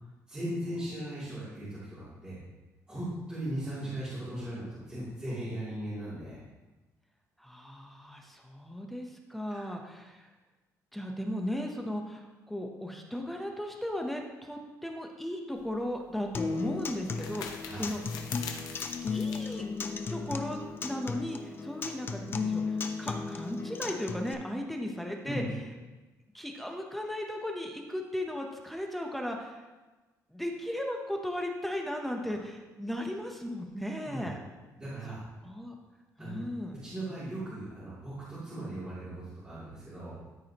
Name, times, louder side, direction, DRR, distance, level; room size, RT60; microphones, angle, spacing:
voice 1, 0.3-2.4 2.9-6.4 9.5-9.6 17.6-17.9 25.2-25.4 34.0-34.3 34.8-35.2 36.2-36.4 36.7-40.1, right 1 dB, 15° right, -11 dB, 2.8 m, -38 dB
voice 2, 7.4-10.3 10.9-18.0 18.8-19.6 20.1-25.4 26.3-29.7 30.3-34.4 35.4-35.7 36.2-36.8, left 1 dB, ahead, 2 dB, 0.8 m, -36 dB
sound 1, 15.5-20.7, left 6 dB, 85° left, 0.9 m, -45 dB
Acoustic guitar, 16.3-24.3, left 5 dB, 35° left, 0.6 m, -35 dB
13.0 x 4.8 x 2.9 m, 1.2 s
cardioid pair, 130°, 6 cm